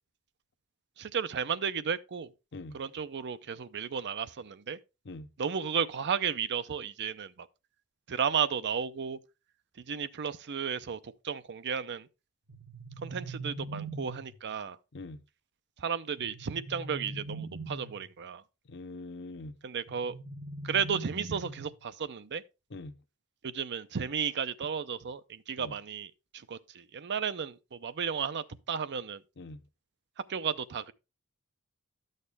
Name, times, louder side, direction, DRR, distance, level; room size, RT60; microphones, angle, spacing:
voice 1, 1.0-2.3 2.7-4.8 5.4-7.5 8.1-9.2 9.9-12.1 13.0-14.8 15.8-18.4 19.6-20.1 20.6-22.4 23.4-29.2 30.3-30.9, right 7 dB, 55° right, 0.6 m, -33 dB
sound 1, 12.5-14.5 16.2-18.1 19.9-21.8, right 2 dB, 90° right, 1.5 m, -42 dB
voice 2, 18.7-19.5 22.7-23.0 25.6-25.7 29.4-29.6, left 2 dB, 55° left, 0.8 m, -43 dB
12.0 x 6.6 x 3.4 m
head